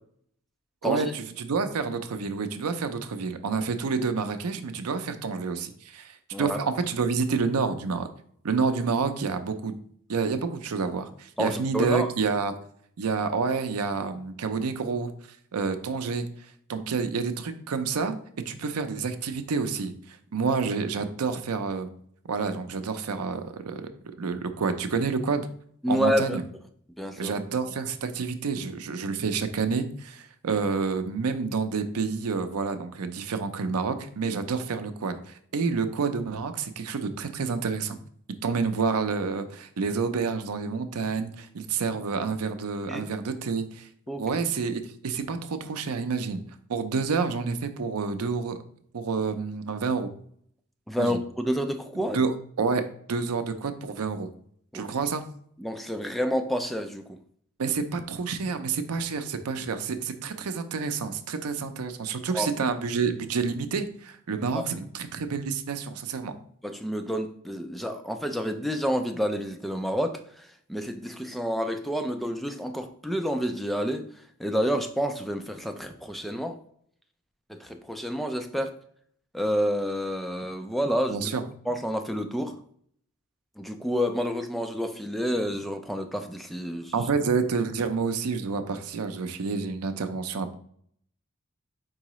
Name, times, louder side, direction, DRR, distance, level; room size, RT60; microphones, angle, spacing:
voice 1, 0.8-8.1 8.4-9.8 10.1-12.5 13.0-15.1 15.5-16.3 16.7-18.2 18.5-21.9 22.3-23.9 24.2-25.5 25.9-26.4 27.2-38.0 38.4-43.9 44.2-46.4 46.7-48.6 48.9-50.1 51.0-51.2 52.1-54.3 54.7-55.2 57.6-66.4 81.1-81.4 86.9-90.5, right 5 dB, 85° right, 9 dB, 0.5 m, -29 dB
voice 2, 11.4-12.1 25.8-26.4 27.0-27.4 42.9-43.1 44.1-44.4 50.9-52.2 54.7-54.9 55.6-57.2 62.3-62.5 66.6-74.0 74.4-76.6 77.5-78.7 79.3-81.2 81.7-82.6 83.6-86.9, equal, ahead, 6 dB, 0.3 m, -29 dB
4.7 x 3.7 x 3.0 m, 0.64 s
head